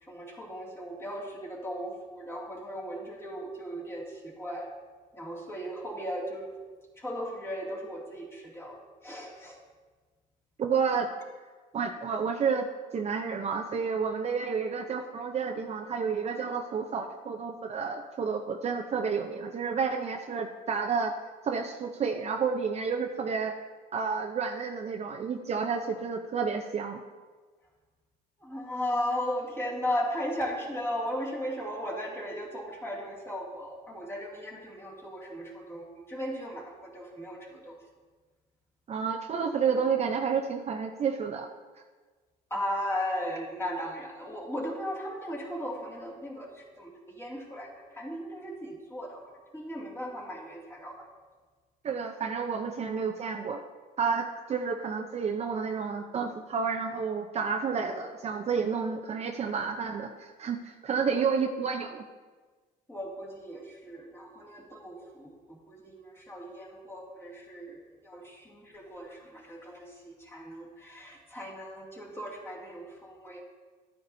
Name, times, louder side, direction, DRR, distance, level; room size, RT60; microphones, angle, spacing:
voice 1, 0.0-4.7 5.1-6.5 7.0-9.6 28.4-37.8 42.5-51.1 61.1-61.2 62.9-73.4, equal, 15° left, -3 dB, 2.3 m, -37 dB
voice 2, 10.6-11.1 11.7-12.7 12.9-21.1 21.4-23.6 23.9-27.0 38.9-41.5 51.8-53.6 54.0-62.0, right 5 dB, 40° right, 3 dB, 0.6 m, -30 dB
12.5 x 9.4 x 2.7 m, 1.4 s
cardioid pair, 110°, 17 cm